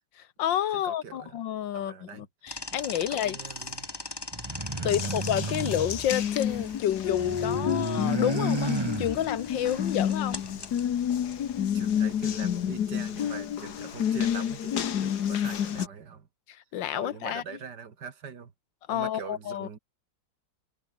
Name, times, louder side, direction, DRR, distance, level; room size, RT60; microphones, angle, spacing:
voice 1, 0.2-3.4 4.8-10.4 16.5-17.4 18.9-19.7, left 11 dB, 85° left, 1.7 m, -30 dB
voice 2, 0.8-1.4 1.7-2.3 3.1-3.9 4.8-5.2 9.6-9.9 10.5-10.6 11.6-16.3 16.9-18.5 18.9-19.8, right 6 dB, 65° right, 2.4 m, -43 dB
sound 1, 2.5-12.9, left 2 dB, 15° left, 1.3 m, -42 dB
sound 2, 4.3-6.7 7.0-9.6, right 2 dB, 15° right, 1.6 m, -33 dB
Water tap faucet, 4.9-15.9, left 9 dB, 65° left, 1.7 m, -29 dB
omnidirectional pair, 1.9 m